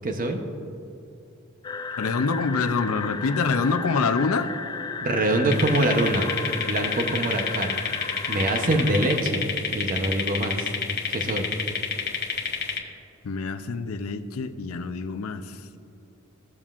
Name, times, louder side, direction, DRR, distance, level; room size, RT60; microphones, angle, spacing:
voice 1, 0.0-0.4 5.0-6.3 6.6-7.8 8.3-10.7 11.1-11.5, right 1 dB, 40° right, 5 dB, 0.8 m, -24 dB
sound 1, 1.6-9.2, left 5 dB, 20° left, 0.3 m, -34 dB
voice 2, 2.0-4.5 13.2-15.5, left 4 dB, 80° left, 9 dB, 0.5 m, -26 dB
sound 2, 5.5-12.8, left 6 dB, 50° left, 1.1 m, -29 dB
15.5 x 7.2 x 2.4 m, 2.8 s
head